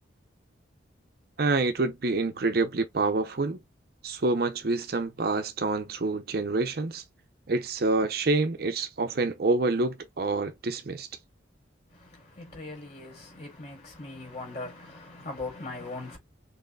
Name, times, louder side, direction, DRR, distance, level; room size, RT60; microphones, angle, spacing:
voice 1, 1.4-3.6 4.0-7.0 7.5-11.1, right 3 dB, 50° right, 0.6 m, -27 dB
voice 2, 11.9-16.2, left 2 dB, 35° left, 3.5 m, -40 dB
6.3 x 3.1 x 2.2 m
head